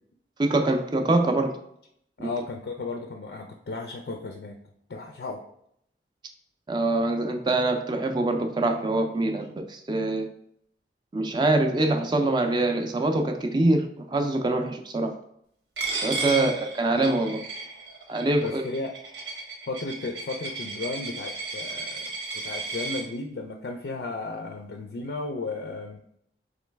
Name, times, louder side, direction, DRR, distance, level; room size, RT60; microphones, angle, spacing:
voice 1, 0.4-1.5 2.2-2.3 6.7-10.3 11.1-15.1 16.0-17.4 18.1-18.6, right 2 dB, 25° right, 4 dB, 0.4 m, -24 dB
voice 2, 2.2-4.6 4.9-5.4 16.3-16.5 18.4-18.9 19.7-26.0, left 3 dB, 65° left, 3 dB, 0.4 m, -34 dB
Coin (dropping), 15.8-23.0, right 3 dB, 85° right, 1.0 m, -34 dB
3.9 x 3.1 x 3.3 m, 0.71 s
head